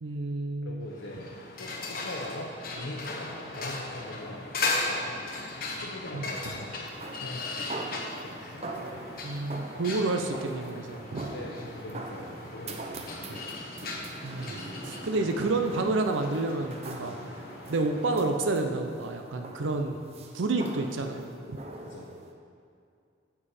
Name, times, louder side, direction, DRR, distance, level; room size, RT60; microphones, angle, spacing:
voice 1, 0.0-0.9 6.1-6.3 9.2-11.3 13.2-13.4 14.2-17.1 17.7-20.0 20.3-21.6, right 2 dB, 85° right, 5 dB, 0.6 m, -30 dB
voice 2, 0.6-5.3 5.7-6.9 7.2-7.8 8.2-8.7 11.3-13.4 19.6-19.7 21.8-22.1, left 1 dB, 90° left, -3 dB, 0.8 m, -42 dB
sound 1, 0.9-18.3, left 2 dB, 50° left, 1.0 m, -37 dB
sound 2, 6.8-22.3, right 2 dB, 30° right, 0.6 m, -43 dB
9.7 x 7.2 x 4.3 m, 2.4 s
head